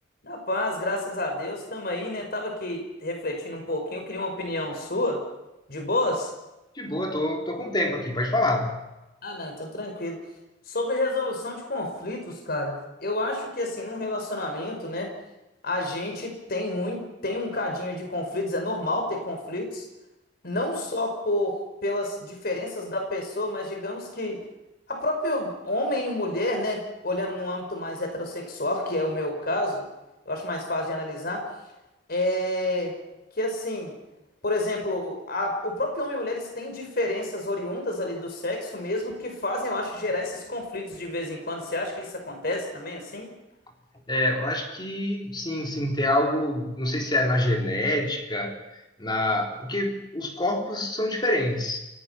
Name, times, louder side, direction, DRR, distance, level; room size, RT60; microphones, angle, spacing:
voice 1, 0.2-5.2 5.7-6.3 9.2-10.2 10.7-15.1 15.6-19.9 20.4-24.4 24.9-29.8 30.3-31.4 32.1-32.9 33.4-33.9 34.4-43.3, left 1 dB, 55° left, 3 dB, 5.3 m, -29 dB
voice 2, 6.8-8.9 44.1-48.6 49.0-51.8, left 1 dB, 25° left, 2 dB, 3.7 m, -26 dB
29.0 x 18.5 x 5.8 m, 0.97 s
head